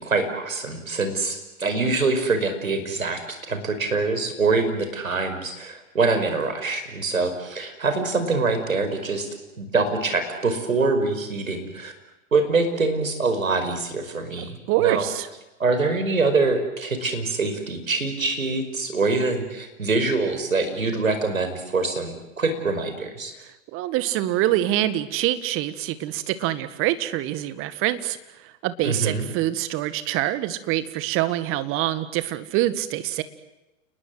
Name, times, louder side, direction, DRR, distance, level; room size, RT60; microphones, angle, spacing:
voice 1, 0.0-9.3 9.6-11.9 12.3-15.1 15.6-23.3 28.8-29.3, right 3 dB, 85° right, 7 dB, 5.3 m, -24 dB
voice 2, 14.7-15.3 23.7-28.2 28.4-33.2, right 14 dB, 30° right, 13 dB, 1.8 m, -25 dB
30.0 x 20.5 x 7.8 m, 1.0 s
hypercardioid pair, 115°, 40 cm